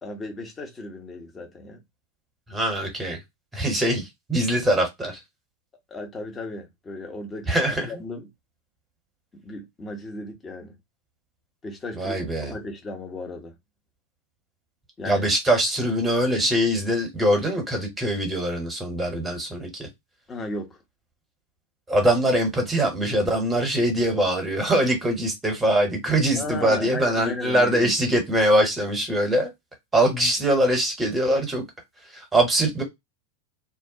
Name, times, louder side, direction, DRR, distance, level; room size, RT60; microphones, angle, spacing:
voice 1, 0.0-1.8 5.9-7.5 7.9-8.3 9.3-10.8 11.6-13.5 15.0-15.3 20.3-20.8 26.4-27.9, left 2 dB, 20° left, 0.8 m, -35 dB
voice 2, 2.5-3.2 3.5-5.2 7.5-7.9 11.9-12.5 15.0-19.9 21.9-29.5 29.9-31.6 32.1-32.8, right 1 dB, 10° right, 1.0 m, -23 dB
2.3 x 2.0 x 2.7 m
figure-of-eight pair, 90°, 0 cm